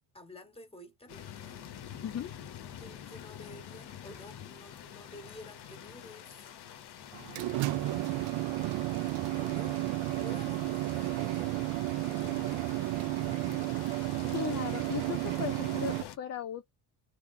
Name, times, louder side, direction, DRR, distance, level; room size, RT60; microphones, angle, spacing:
voice 1, 0.1-1.6 2.8-6.5 7.5-9.0 9.3-9.8 10.1-12.6, left 1 dB, 10° left, 1.6 m, -51 dB
sound 1, 1.1-16.2, left 9 dB, 55° left, 0.9 m, -47 dB
sound 2, 7.1-16.0, right 18 dB, 75° right, 0.6 m, -32 dB
voice 2, 14.3-16.7, left 9 dB, 35° left, 0.5 m, -37 dB
3.5 x 3.1 x 3.7 m
cardioid pair, 85°, 47 cm